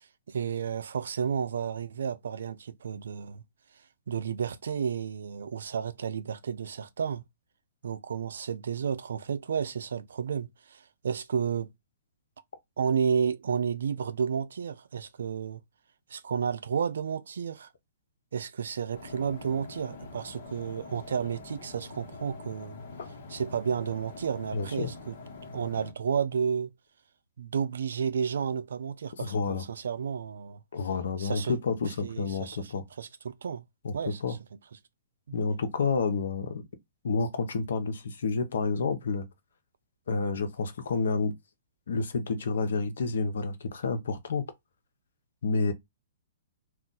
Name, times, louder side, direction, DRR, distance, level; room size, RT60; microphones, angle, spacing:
voice 1, 0.0-3.4 4.1-7.2 7.8-11.7 12.8-15.6 16.1-17.7 18.3-22.8 23.3-25.2 25.5-26.7 27.4-30.6 31.2-31.5 32.0-32.7 33.0-33.6 33.9-34.2 35.3-35.4, right 7 dB, 80° right, 0.4 m, -32 dB
sound 1, 18.9-25.9, left 3 dB, 55° left, 1.0 m, -45 dB
voice 2, 24.5-24.9 29.2-29.6 30.7-32.8 33.8-34.4 35.3-36.6 37.0-39.3 40.1-41.3 41.9-44.5 45.4-45.7, left 4 dB, 75° left, 0.7 m, -29 dB
2.4 x 2.2 x 3.9 m
hypercardioid pair, 140°, 0 cm